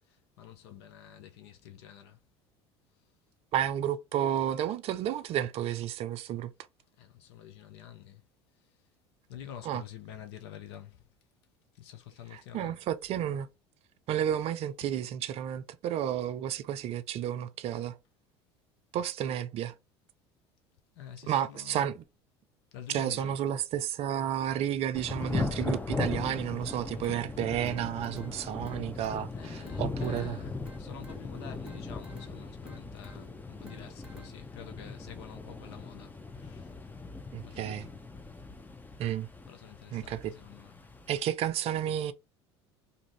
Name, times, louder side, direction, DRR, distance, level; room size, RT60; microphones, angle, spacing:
voice 1, 0.1-2.2 7.0-8.2 9.3-11.0 11.7-12.8 21.0-21.9 22.7-23.6 29.4-36.7 37.5-37.9 39.5-40.8, left 10 dB, 70° left, 0.6 m, -48 dB
voice 2, 3.5-6.5 9.6-9.8 12.3-13.5 14.1-18.0 18.9-19.7 21.2-22.0 22.9-30.4 37.3-37.9 39.0-39.3 39.9-40.3 41.1-42.1, right 10 dB, 45° right, 0.4 m, -31 dB
Thunder / Rain, 24.9-41.2, left 3 dB, 15° left, 0.6 m, -39 dB
sound 1, 26.7-34.7, equal, 10° right, 1.1 m, -54 dB
2.6 x 2.5 x 3.1 m
hypercardioid pair, 70°, 14 cm